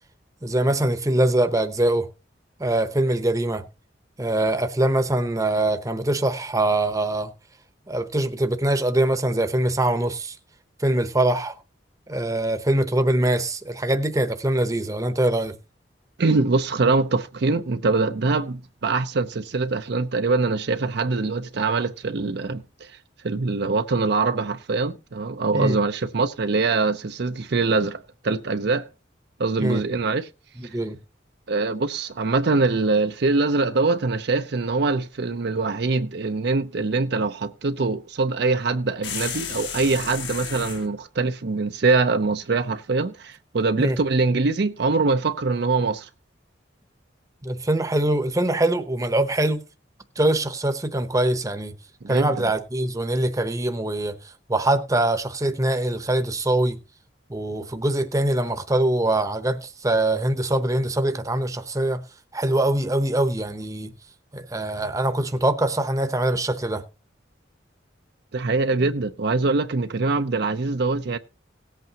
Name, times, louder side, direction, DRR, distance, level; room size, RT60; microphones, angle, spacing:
voice 1, 0.4-2.1 2.6-3.6 4.2-7.3 7.9-10.4 10.8-11.5 12.1-15.6 25.5-25.8 29.6-29.8 30.6-31.0 43.8-44.0 47.4-49.6 50.2-51.7 52.1-54.2 54.5-56.8 57.3-62.0 62.3-63.9 64.3-66.8, right 1 dB, 20° right, 0.8 m, -23 dB
voice 2, 16.2-22.9 23.2-28.0 28.2-28.9 29.4-30.3 31.5-46.1 52.0-52.3 68.3-71.2, right 3 dB, 60° right, 0.6 m, -23 dB
sound 1, 39.0-40.9, left 7 dB, 70° left, 1.9 m, -32 dB
18.0 x 8.1 x 2.9 m
head